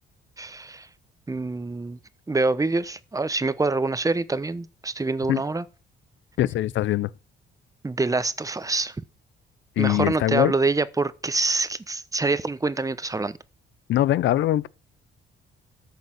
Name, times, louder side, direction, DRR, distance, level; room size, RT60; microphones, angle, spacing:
voice 1, 0.4-0.9 1.3-2.0 2.3-5.6 7.8-9.0 9.8-13.4, right 3 dB, 15° right, 1.0 m, -26 dB
voice 2, 6.4-7.1 9.8-10.5 13.9-14.7, left 14 dB, 70° left, 0.6 m, -22 dB
13.5 x 5.4 x 7.7 m
cardioid pair, 90°, 20 cm